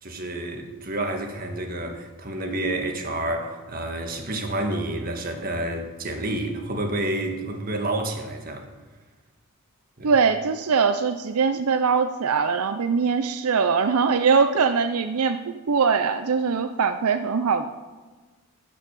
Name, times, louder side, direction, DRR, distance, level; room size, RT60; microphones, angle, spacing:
voice 1, 0.0-8.7 10.0-10.1, right 1 dB, 40° right, 1.6 m, -29 dB
voice 2, 10.0-17.7, right 5 dB, 80° right, 0.5 m, -22 dB
12.5 x 6.3 x 8.3 m
head